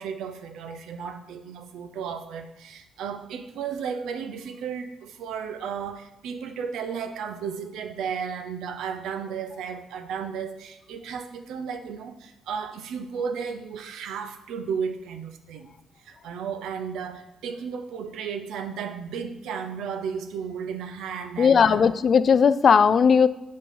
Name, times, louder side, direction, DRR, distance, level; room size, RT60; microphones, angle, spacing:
voice 1, 0.0-15.7 16.0-21.9, right 6 dB, 85° right, 8 dB, 0.6 m, -34 dB
voice 2, 21.4-23.3, left 6 dB, 50° left, 15 dB, 0.3 m, -17 dB
5.3 x 5.2 x 5.6 m, 0.92 s
cardioid pair, 90°, 0 cm